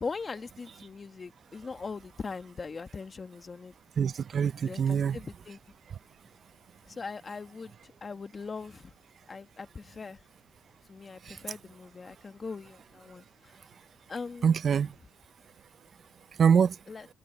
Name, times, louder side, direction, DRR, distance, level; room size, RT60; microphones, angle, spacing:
voice 1, 0.0-3.7 4.6-5.6 6.9-8.9 9.3-10.2 10.9-13.5 14.1-14.6 16.9-17.1, left 4 dB, 35° left, 1.7 m, -40 dB
voice 2, 4.0-5.2 11.2-11.4 14.4-14.9 16.4-16.8, right 7 dB, 50° right, 0.5 m, -24 dB
cardioid pair, 90°, 0 cm